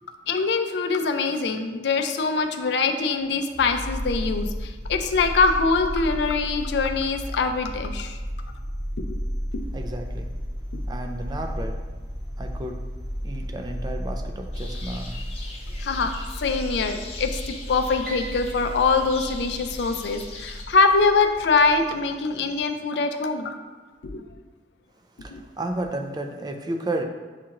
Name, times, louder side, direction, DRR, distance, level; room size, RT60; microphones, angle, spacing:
voice 1, 0.3-8.2 9.0-9.2 9.5-9.6 10.7-10.8 15.8-16.1 16.4-23.5 24.0-24.2 25.3-25.4, left 4 dB, 65° left, 6 dB, 0.4 m, -23 dB
sound 1, 3.5-22.7, equal, 5° left, 0.8 m, -33 dB
voice 2, 9.7-10.3 10.9-11.8 12.4-12.8 13.2-15.2 25.2-27.0, right 1 dB, 25° right, 4 dB, 0.3 m, -32 dB
sound 2, 14.5-20.6, left 3 dB, 35° left, 0.7 m, -41 dB
Piano, 18.0-20.3, right 2 dB, 45° right, 0.7 m, -42 dB
7.4 x 2.5 x 2.9 m, 1.3 s
head